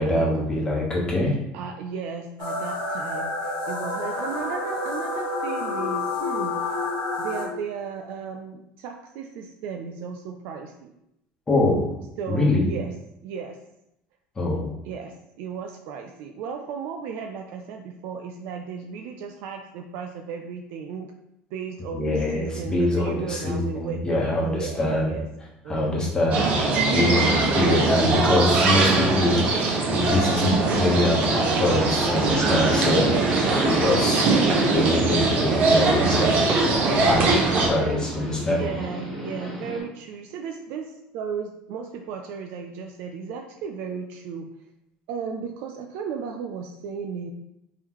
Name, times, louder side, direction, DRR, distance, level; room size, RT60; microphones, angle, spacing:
voice 1, 0.0-1.3 11.5-11.8 12.3-12.7 14.4-14.7 21.9-25.1 25.7-33.1 33.7-34.3 34.7-36.4 37.0-38.6, left 1 dB, 20° left, -3 dB, 1.1 m, -24 dB
voice 2, 1.5-3.3 3.7-6.5 7.2-10.9 12.2-12.9 13.2-13.6 14.8-21.1 21.5-24.0 24.4-25.3 25.6-26.1 33.1-34.6 37.2-38.1 38.5-44.5 45.1-47.3, right 6 dB, 65° right, 3 dB, 0.4 m, -35 dB
sound 1, 2.4-7.4, left 2 dB, 65° left, 1.3 m, -29 dB
sound 2, 26.3-37.7, right 3 dB, 45° right, 0.9 m, -22 dB
Subway metro underground, 32.2-39.8, right 1 dB, ahead, 1.3 m, -29 dB
3.7 x 3.1 x 3.0 m, 0.83 s
cardioid pair, 130°, 4 cm